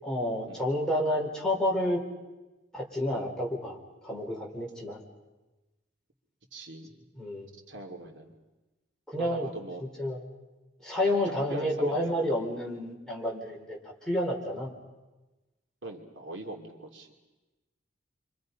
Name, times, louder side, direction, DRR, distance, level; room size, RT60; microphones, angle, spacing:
voice 1, 0.0-2.0 2.7-3.8 4.0-5.0 7.2-7.5 9.1-9.5 10.0-10.2 10.8-13.8 14.1-14.7, left 1 dB, 5° left, -3 dB, 4.0 m, -29 dB
voice 2, 6.5-6.9 7.7-8.4 9.2-9.8 11.0-11.1 11.5-12.3 15.8-17.1, right 2 dB, 80° right, 2 dB, 2.8 m, -41 dB
30.0 x 25.0 x 5.4 m, 1.1 s
head